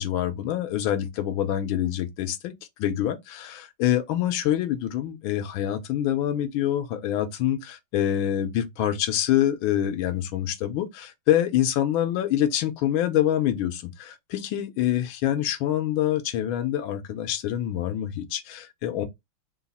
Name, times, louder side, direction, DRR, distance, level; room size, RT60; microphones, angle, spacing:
voice 1, 0.0-2.5 2.8-19.1, left 11 dB, 85° left, 1.5 m, -26 dB
3.9 x 2.3 x 4.0 m
omnidirectional pair, 2.2 m